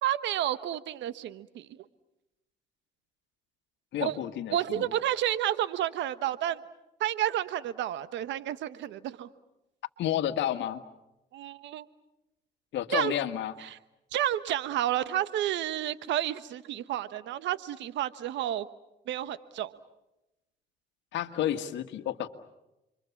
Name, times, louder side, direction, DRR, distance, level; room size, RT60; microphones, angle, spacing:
voice 1, 0.0-1.7 4.0-4.2 4.5-6.6 7.0-9.3 11.3-11.9 12.9-13.1 13.6-13.8 14.1-18.7 19.1-19.7, right 12 dB, 85° right, 14 dB, 1.3 m, -30 dB
voice 2, 3.9-4.9 10.0-10.8 12.7-13.5 21.1-22.3, left 11 dB, 80° left, 8 dB, 1.7 m, -31 dB
30.0 x 24.0 x 7.2 m, 0.94 s
supercardioid pair, 70°, 18 cm